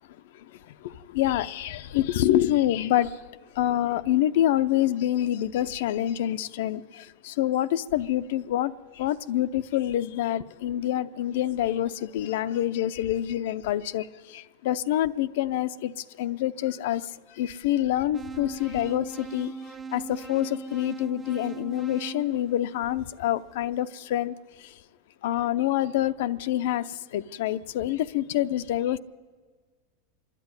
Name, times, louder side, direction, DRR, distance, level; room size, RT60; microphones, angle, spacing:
voice 1, 0.8-3.2 3.6-15.9 16.2-17.1 17.4-19.5 19.9-24.3 25.2-29.0, left 12 dB, 70° left, 12 dB, 0.6 m, -26 dB
sound 1, 18.1-23.3, right 4 dB, 15° right, 0.7 m, -40 dB
25.5 x 10.5 x 9.6 m, 1.5 s
supercardioid pair, 135°, 0 cm